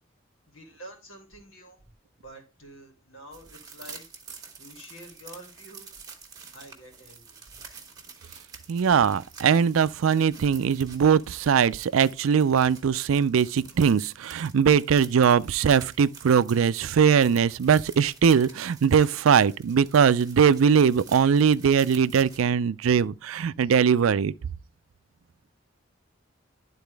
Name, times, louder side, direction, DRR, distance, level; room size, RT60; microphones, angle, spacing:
voice 1, 0.5-1.8 2.2-4.0 4.6-5.9 6.5-7.4, right 1 dB, 85° left, 2.8 m, -47 dB
sound 1, 3.3-22.4, right 6 dB, 20° right, 1.4 m, -48 dB
voice 2, 8.7-24.3, right 7 dB, 90° right, 0.4 m, -21 dB
11.5 x 4.1 x 3.4 m
head